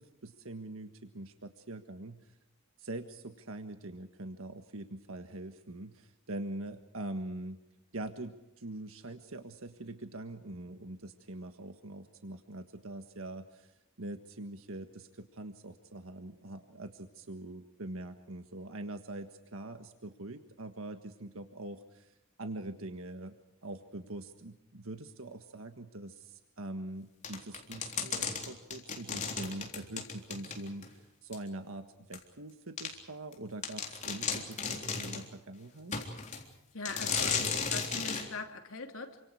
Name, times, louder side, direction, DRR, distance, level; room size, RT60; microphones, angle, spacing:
voice 1, 0.0-2.3 2.8-7.6 7.9-36.0, right 1 dB, 80° right, 7 dB, 1.6 m, -43 dB
sound 1, 27.2-30.9 31.3-31.4 32.1-32.2 32.8-32.9 33.3-33.4 33.6-35.3 35.9-36.4 36.9-38.3, left 5 dB, 35° left, 3.7 m, -35 dB
voice 2, 36.7-39.2, left 3 dB, 75° left, 4 dB, 3.0 m, -41 dB
28.5 x 25.5 x 4.8 m, 0.89 s
head